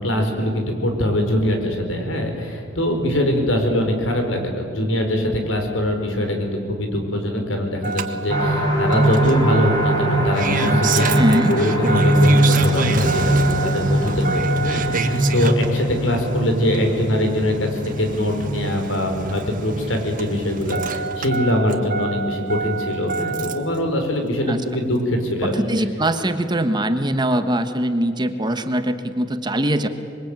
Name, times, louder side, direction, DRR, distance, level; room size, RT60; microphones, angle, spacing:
voice 1, 0.0-17.7 18.0-25.7, left 1 dB, 85° left, 4 dB, 5.0 m, -23 dB
Engine starting, 7.8-23.8 25.0-25.1, right 4 dB, 45° right, 1.5 m, -27 dB
sound 1, 8.3-21.8 22.2-22.3 22.7-22.8, right 1 dB, 20° left, 4.9 m, -22 dB
voice 2, 11.2-11.5 24.5-24.6 25.4-29.9, right 1 dB, 20° right, 8 dB, 1.4 m, -22 dB
26.0 x 22.5 x 9.1 m, 2.3 s
head